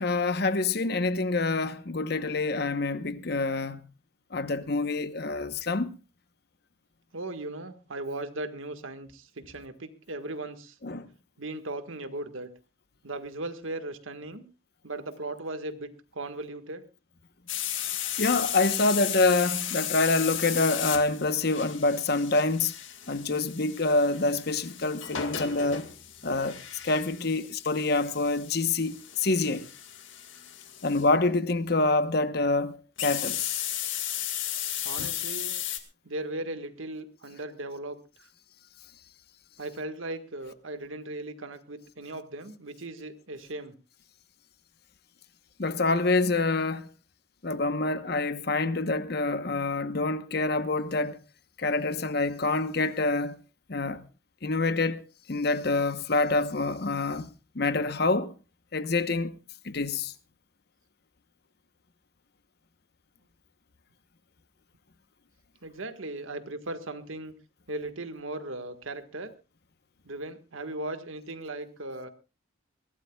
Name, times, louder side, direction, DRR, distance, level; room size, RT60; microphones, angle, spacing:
voice 1, 0.0-3.8 4.3-6.0 10.8-11.1 18.2-22.7 23.1-25.9 26.2-26.6 26.8-29.7 30.8-33.6 35.0-35.1 45.6-46.9 47.4-51.2 51.6-53.4 53.7-54.0 54.4-55.0 55.3-57.3 57.5-58.3 58.7-59.4 59.6-60.1, left 3 dB, 50° left, 1.0 m, -26 dB
voice 2, 7.1-10.7 11.4-12.5 13.0-14.4 14.8-16.8 34.8-35.5 36.0-38.3 39.6-43.7 65.6-67.3 67.7-69.3 70.0-72.1, right 2 dB, 85° right, 1.6 m, -37 dB
sound 1, 17.5-31.1 33.0-35.8, left 11 dB, 70° left, 2.1 m, -35 dB
22.5 x 17.0 x 2.3 m
head